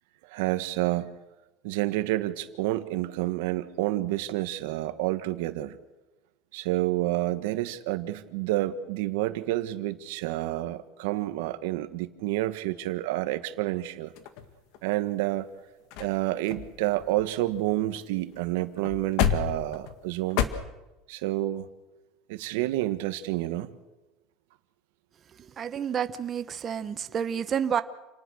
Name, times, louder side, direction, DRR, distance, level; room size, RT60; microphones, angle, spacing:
voice 1, 0.3-1.1 1.6-5.8 6.5-14.1 14.8-15.5 16.0-20.5 21.1-21.7 22.3-23.7, right 16 dB, 80° right, 11 dB, 1.5 m, -29 dB
sound 1, 14.2-15.0 15.6-15.7 15.9-16.2 16.5-18.0 18.3-18.4 18.8-20.5, left 9 dB, 60° left, 1.9 m, -30 dB
voice 2, 25.6-27.8, right 8 dB, 25° right, 10 dB, 0.9 m, -29 dB
28.5 x 19.5 x 6.4 m, 1.0 s
cardioid pair, 160°, 0 cm